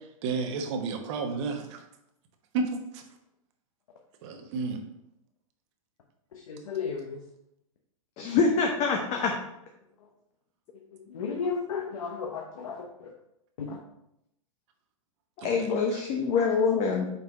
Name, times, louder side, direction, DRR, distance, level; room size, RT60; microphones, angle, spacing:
voice 1, 0.2-1.8 2.5-3.0 4.2-4.8 15.4-15.6, right 4 dB, 55° right, 4 dB, 1.1 m, -31 dB
voice 2, 6.3-7.2 10.0-10.1 10.9-13.1 13.6-13.8, left 5 dB, 75° left, 1 dB, 1.0 m, -34 dB
voice 3, 8.2-9.3 15.4-17.1, left 5 dB, 40° left, 2 dB, 0.8 m, -25 dB
5.5 x 4.4 x 4.0 m, 0.81 s
hypercardioid pair, 115°, 18 cm